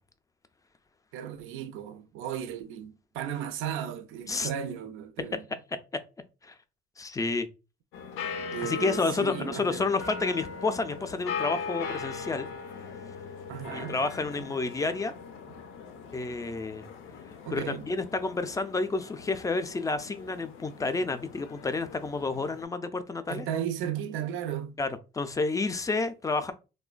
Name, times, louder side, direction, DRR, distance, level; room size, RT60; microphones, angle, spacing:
voice 1, 1.1-5.5 8.5-9.9 13.5-14.0 14.4-14.5 17.5-17.9 23.3-24.8, right 9 dB, 90° right, 0.4 m, -35 dB
voice 2, 7.0-7.5 8.6-12.5 13.7-15.1 16.1-16.9 17.5-23.5 24.8-24.9 25.1-26.5, left 3 dB, 15° left, 0.3 m, -30 dB
sound 1, 7.9-22.6, left 5 dB, 90° left, 0.5 m, -40 dB
3.0 x 2.1 x 2.4 m
cardioid pair, 90°, 20 cm